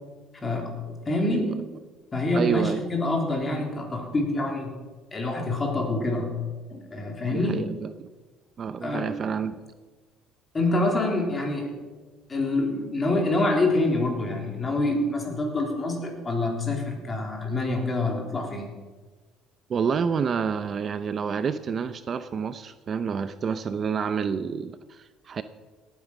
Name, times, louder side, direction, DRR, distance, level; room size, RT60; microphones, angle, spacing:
voice 1, 0.4-1.6 2.1-4.7 5.1-6.3 6.7-7.6 8.8-9.1 10.5-11.8 12.3-18.7, left 2 dB, 25° left, 2 dB, 3.6 m, -26 dB
voice 2, 1.3-1.7 2.3-2.8 7.3-8.1 8.6-9.5 19.7-25.4, right 6 dB, 40° right, 12 dB, 0.6 m, -28 dB
17.5 x 9.2 x 6.1 m, 1.3 s
cardioid pair, 115°, 0 cm